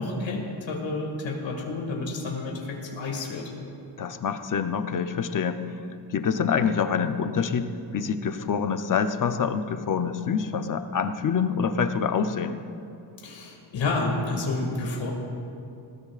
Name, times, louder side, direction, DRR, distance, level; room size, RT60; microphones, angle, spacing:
voice 1, 0.0-3.5 13.2-15.1, left 3 dB, 80° left, -1 dB, 2.2 m, -30 dB
voice 2, 4.0-5.6 6.1-12.6, left 6 dB, 45° left, 8 dB, 0.7 m, -26 dB
20.0 x 18.0 x 2.5 m, 2.6 s
wide cardioid pair, 160°, 44 cm